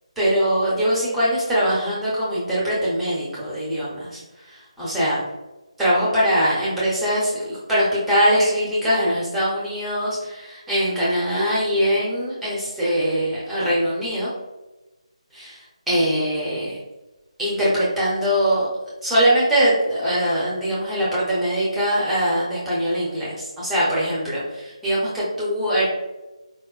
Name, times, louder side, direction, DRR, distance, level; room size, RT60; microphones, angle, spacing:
voice 1, 0.2-4.2 4.8-5.2 5.8-14.3 15.3-15.6 15.9-16.8 17.4-18.7 19.0-25.9, equal, 5° right, -9 dB, 0.5 m, -22 dB
4.3 x 2.1 x 2.3 m, 1.1 s
figure-of-eight pair, 170°, 4 cm